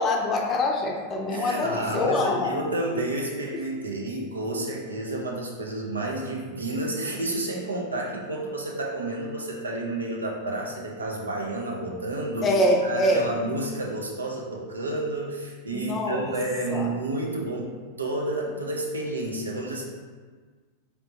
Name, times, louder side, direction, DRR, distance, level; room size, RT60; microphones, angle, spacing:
voice 1, 0.0-2.6 3.5-3.6 12.4-13.3 15.7-16.3 16.7-16.9, left 1 dB, 25° left, 1 dB, 0.6 m, -24 dB
voice 2, 1.3-12.5 12.8-17.7 18.0-19.9, right 2 dB, 75° right, -1 dB, 0.7 m, -30 dB
4.1 x 3.4 x 2.8 m, 1.5 s
figure-of-eight pair, 90°, 0 cm